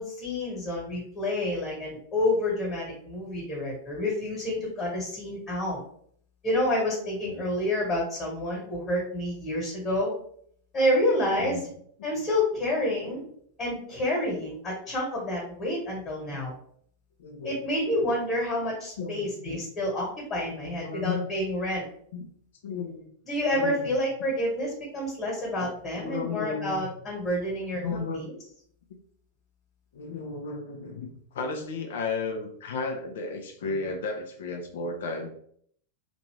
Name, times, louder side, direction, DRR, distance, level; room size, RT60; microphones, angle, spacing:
voice 1, 0.0-5.8 6.4-10.1 10.7-11.6 12.0-13.2 13.6-16.5 17.4-21.8 23.2-28.3, left 1 dB, 25° left, -3 dB, 1.3 m, -28 dB
voice 2, 17.2-17.6 18.0-18.1 19.0-19.7 20.4-21.2 22.1-22.3 22.6-23.0 23.5-24.0 25.6-26.8 27.7-28.2 29.9-35.3, left 4 dB, 60° left, 3 dB, 0.5 m, -34 dB
2.7 x 2.5 x 3.2 m, 0.63 s
figure-of-eight pair, 90°, 0 cm